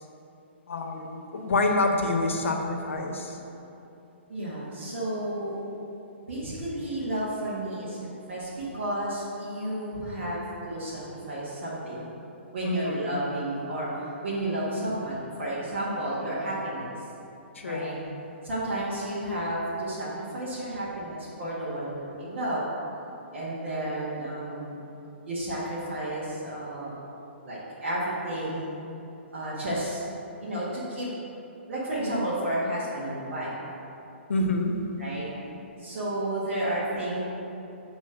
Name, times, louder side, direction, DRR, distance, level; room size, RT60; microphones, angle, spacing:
voice 1, 0.7-3.4 12.6-13.1 17.5-18.0 34.3-34.8, left 2 dB, 80° left, 3 dB, 0.9 m, -27 dB
voice 2, 4.3-5.6 6.3-12.1 12.5-16.9 17.6-17.9 18.4-22.6 23.3-24.8 25.2-27.0 27.4-28.7 29.3-30.0 30.4-31.1 31.7-33.5 35.0-35.3 35.8-37.2, right 1 dB, 65° right, -8 dB, 1.5 m, -32 dB
6.9 x 3.1 x 5.6 m, 2.9 s
hypercardioid pair, 150°, 7 cm